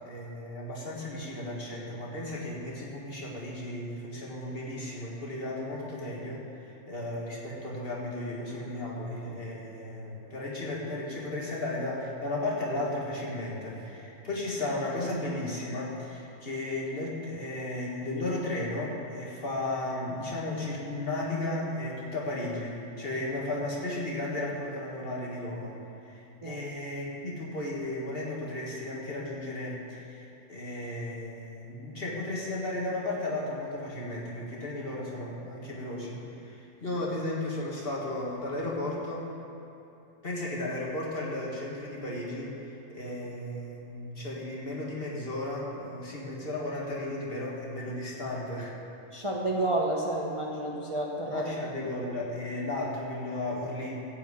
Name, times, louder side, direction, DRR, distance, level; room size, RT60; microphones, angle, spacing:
voice 1, 0.0-25.8 26.0-39.3 40.2-48.7 51.3-54.1, left 1 dB, 40° left, -4 dB, 1.9 m, -34 dB
voice 2, 49.1-51.5, right 1 dB, 25° right, -2 dB, 0.8 m, -30 dB
14.5 x 5.3 x 8.3 m, 3.0 s
omnidirectional pair, 1.5 m